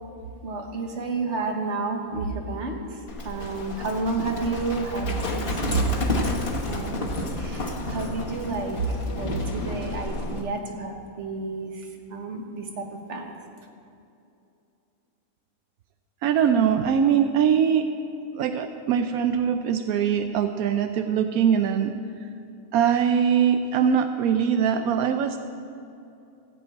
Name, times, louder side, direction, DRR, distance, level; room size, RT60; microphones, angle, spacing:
voice 1, 0.4-6.4 6.7-7.1 7.4-13.3, right 3 dB, 55° right, 3 dB, 1.5 m, -30 dB
Livestock farm animals working animals, 3.1-10.4, left 1 dB, 45° left, 1.5 m, -31 dB
voice 2, 16.2-17.9 18.3-21.9 22.7-25.4, right 8 dB, 85° right, 8 dB, 1.1 m, -22 dB
15.0 x 5.6 x 8.4 m, 2.7 s
omnidirectional pair, 1.5 m